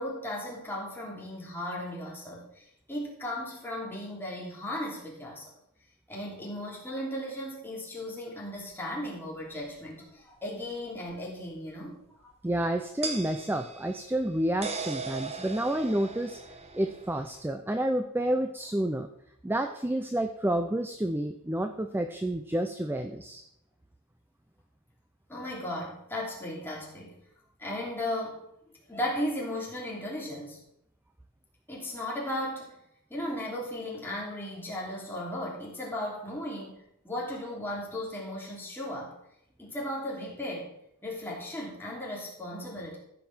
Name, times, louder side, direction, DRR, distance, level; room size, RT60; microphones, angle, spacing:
voice 1, 0.0-5.5 6.1-12.0 12.2-12.3 25.3-27.2 27.6-28.4 28.9-30.6 31.7-32.8 33.1-39.1 39.6-40.7 41.0-43.0, left 1 dB, 10° left, -4 dB, 3.0 m, -36 dB
sound 1, 8.6-8.7 11.1-11.2 13.0-17.4, right 4 dB, 30° right, 1.2 m, -39 dB
voice 2, 12.4-16.4 16.7-19.1 19.4-23.4, right 1 dB, 10° right, 6 dB, 0.5 m, -29 dB
14.5 x 5.4 x 6.1 m, 0.77 s
head